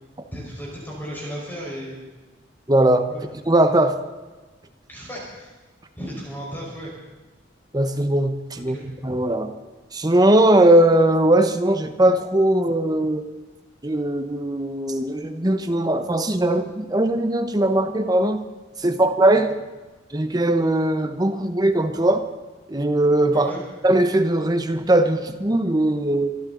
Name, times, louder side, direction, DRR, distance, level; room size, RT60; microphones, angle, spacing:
voice 1, 0.3-2.0 3.1-3.3 4.9-5.5 6.0-6.9 8.7-8.8 23.3-23.6, equal, 10° left, -4 dB, 4.8 m, -34 dB
voice 2, 2.7-3.1 3.5-4.0 7.7-8.8 9.0-9.5 9.9-13.2 13.8-18.4 18.8-19.5 20.1-22.3 22.7-23.5 23.8-26.4, right 1 dB, 20° right, 8 dB, 1.0 m, -19 dB
25.0 x 12.0 x 3.9 m, 1.2 s
head